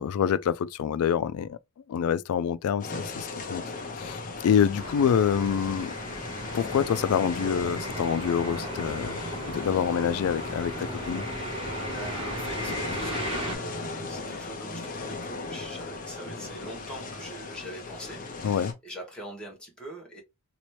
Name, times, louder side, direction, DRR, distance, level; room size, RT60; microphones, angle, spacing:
voice 1, 0.0-1.6 1.9-3.6 4.0-5.9 6.5-9.2 9.5-11.2 18.4-18.7, left 8 dB, 75° left, 0.3 m, -26 dB
sound 1, 2.8-18.7, left 3 dB, 40° left, 0.7 m, -37 dB
sound 2, 4.7-13.6, right 1 dB, 25° right, 1.2 m, -36 dB
voice 2, 11.9-20.2, right 1 dB, 5° left, 1.1 m, -43 dB
3.0 x 2.9 x 3.1 m
head